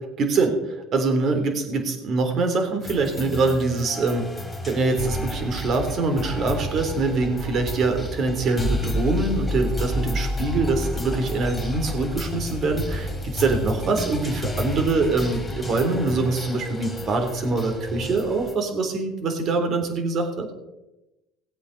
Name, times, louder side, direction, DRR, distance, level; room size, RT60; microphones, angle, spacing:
voice 1, 0.2-4.3 4.7-20.5, right 3 dB, 45° right, 5 dB, 3.6 m, -24 dB
sound 1, 2.8-18.6, left 1 dB, 10° left, 3.2 m, -31 dB
18.0 x 8.2 x 6.7 m, 0.98 s
supercardioid pair, 95°, 0 cm